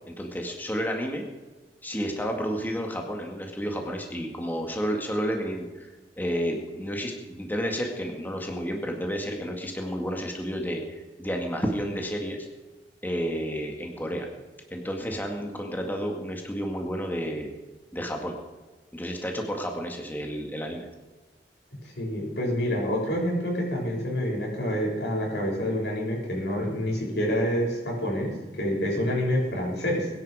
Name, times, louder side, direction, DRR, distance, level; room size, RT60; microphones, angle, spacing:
voice 1, 0.1-1.3 1.8-5.9 6.2-12.5 13.0-14.3 14.7-17.5 17.9-18.4 18.9-20.9, equal, 10° left, 2 dB, 2.0 m, -31 dB
voice 2, 21.9-30.1, equal, 70° left, -2 dB, 6.6 m, -27 dB
22.0 x 10.5 x 5.0 m, 1.2 s
head